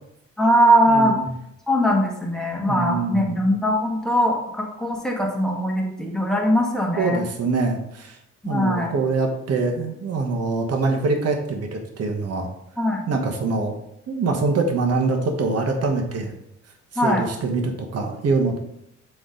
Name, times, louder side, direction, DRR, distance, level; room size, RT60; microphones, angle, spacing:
voice 1, 0.4-1.2 1.7-7.2 8.4-9.0 12.8-13.1 16.9-17.3, equal, ahead, -2 dB, 1.6 m, -21 dB
voice 2, 0.9-1.3 2.7-3.4 7.0-8.2 8.4-12.5 13.1-13.8 14.1-16.3 17.0-18.6, right 3 dB, 55° right, 3 dB, 1.2 m, -24 dB
7.6 x 3.8 x 3.8 m, 0.79 s
cardioid pair, 90°, 30 cm